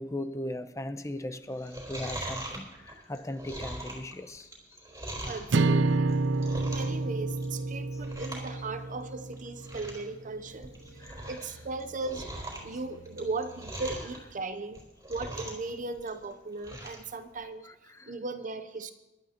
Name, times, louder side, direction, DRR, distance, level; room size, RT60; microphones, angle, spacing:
voice 1, 0.0-4.5 5.2-5.5 5.9-6.1 7.8-8.0 10.9-11.4 17.6-18.1, left 1 dB, 15° left, 0.7 m, -39 dB
Chewing mastication, 1.5-5.5 6.0-7.0 7.3-7.7 8.0-8.5 8.8-8.9 9.3-9.4 9.6-10.1 10.5-11.5 11.8-14.2 14.6-15.7 16.0-17.0 17.4-17.5, right 1 dB, 20° right, 3.9 m, -40 dB
sound 1, 5.2-14.1, right 1 dB, 85° left, 1.4 m, -55 dB
voice 2, 5.2-6.1 6.6-10.7 11.3-12.3 12.6-14.8 15.1-17.6 18.1-18.9, right 3 dB, 45° right, 0.7 m, -37 dB
sound 2, 5.5-9.9, right 3 dB, 80° right, 0.5 m, -29 dB
24.0 x 12.0 x 2.9 m
head